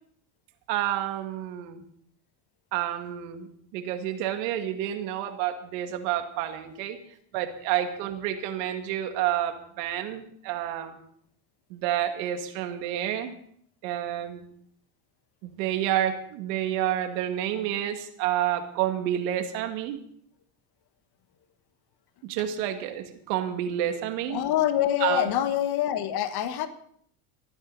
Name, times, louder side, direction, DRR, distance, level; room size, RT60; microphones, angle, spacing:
voice 1, 0.7-1.8 2.7-3.5 3.7-7.0 7.3-11.0 11.7-13.3 13.8-14.4 15.4-20.0 22.2-24.4 25.0-25.2, right 11 dB, 80° right, 6 dB, 2.3 m, -29 dB
voice 2, 24.3-26.7, left 11 dB, 50° left, 9 dB, 1.6 m, -25 dB
26.0 x 9.7 x 4.1 m, 0.64 s
supercardioid pair, 95°, 48 cm